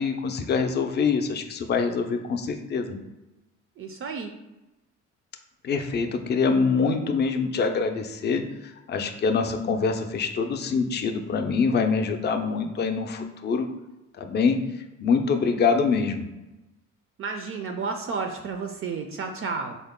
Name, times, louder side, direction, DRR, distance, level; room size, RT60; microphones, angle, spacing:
voice 1, 0.0-3.0 5.6-8.4 8.9-13.7 14.2-14.6 15.0-16.3, left 5 dB, 35° left, 5 dB, 0.4 m, -25 dB
voice 2, 3.8-4.3 17.2-19.8, right 4 dB, 45° right, 5 dB, 0.4 m, -31 dB
3.8 x 2.0 x 3.5 m, 1.0 s
cardioid pair, 90°, 30 cm